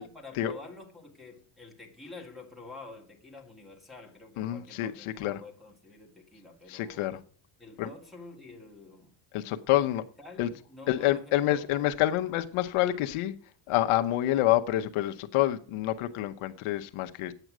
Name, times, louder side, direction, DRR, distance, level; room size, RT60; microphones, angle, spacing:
voice 1, 0.0-7.1 7.6-9.2 9.7-9.9 10.2-11.8, left 3 dB, ahead, 1.7 m, -48 dB
voice 2, 4.4-5.4 6.7-7.2 7.8-7.9 9.3-10.0 10.4-10.5 10.9-13.3 13.7-17.3, left 14 dB, 75° left, 0.9 m, -27 dB
9.1 x 7.9 x 6.1 m
cardioid pair, 165°, 50 cm